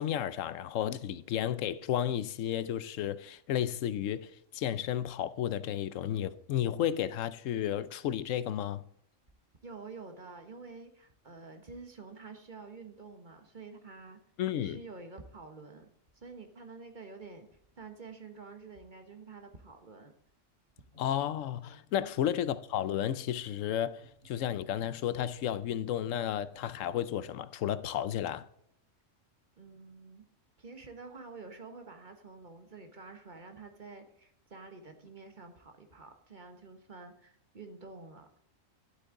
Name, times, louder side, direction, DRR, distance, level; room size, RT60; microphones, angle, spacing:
voice 1, 0.0-8.8 14.4-14.8 21.0-28.5, left 10 dB, 80° left, 1.0 m, -32 dB
voice 2, 9.6-14.2 14.5-15.9 16.1-17.5 17.8-20.1 22.0-22.1 29.6-30.3 30.6-38.3, right 4 dB, 40° right, 1.3 m, -48 dB
sound 1, 20.9-27.0, right 1 dB, 90° right, 3.8 m, -60 dB
11.0 x 8.4 x 3.8 m
omnidirectional pair, 1.3 m